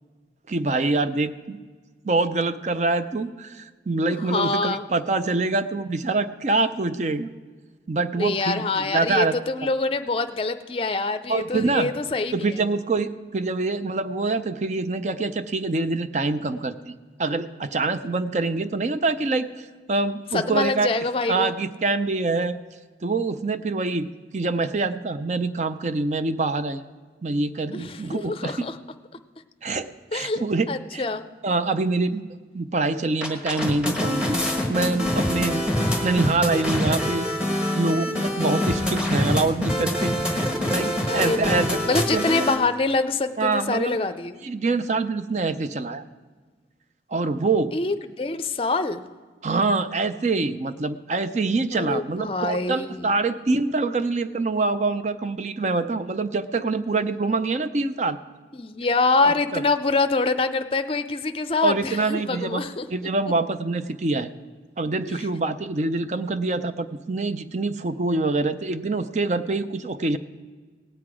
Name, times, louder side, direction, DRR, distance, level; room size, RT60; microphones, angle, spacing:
voice 1, 0.5-1.6 2.0-7.3 7.9-9.4 11.3-11.9 12.3-16.9 17.2-20.9 21.3-22.6 23.0-26.8 27.2-28.7 29.6-31.0 31.4-32.3 32.5-34.4 34.7-35.7 36.0-37.3 37.5-42.3 43.4-44.0 44.4-46.0 47.1-47.8 49.4-58.2 59.2-59.6 61.6-64.3 64.8-70.2, right 3 dB, 40° right, 11 dB, 0.5 m, -25 dB
voice 2, 4.1-4.8 8.2-12.6 20.3-21.5 27.7-28.8 30.1-31.2 41.0-44.3 47.7-49.0 51.7-53.2 58.5-62.9 65.1-65.3, left 3 dB, 30° left, 9 dB, 0.5 m, -25 dB
sound 1, 33.2-42.6, left 1 dB, 5° right, 1.2 m, -25 dB
18.0 x 7.9 x 4.8 m, 1.4 s
head